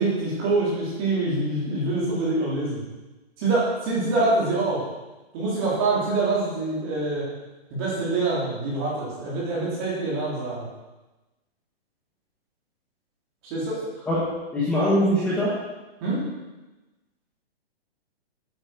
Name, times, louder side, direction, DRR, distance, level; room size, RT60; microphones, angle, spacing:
voice 1, 0.0-2.8 3.4-4.8 5.3-7.3 7.7-10.7 13.4-13.8 16.0-16.2, right 2 dB, 20° right, -6 dB, 3.4 m, -25 dB
voice 2, 14.5-15.5, equal, 5° left, -8 dB, 1.1 m, -22 dB
9.2 x 8.6 x 6.2 m, 1.1 s
hypercardioid pair, 175°, 32 cm